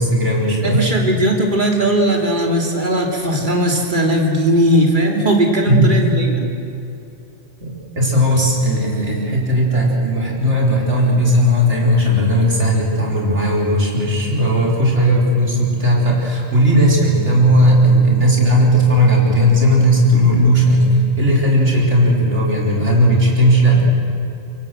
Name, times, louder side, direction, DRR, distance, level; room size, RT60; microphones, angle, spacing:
voice 1, 0.0-0.8 5.7-6.0 7.9-23.8, equal, 85° right, -2 dB, 4.9 m, -15 dB
voice 2, 0.6-6.5, right 1 dB, 45° right, 1 dB, 3.1 m, -17 dB
25.5 x 22.5 x 7.8 m, 2.7 s
omnidirectional pair, 1.2 m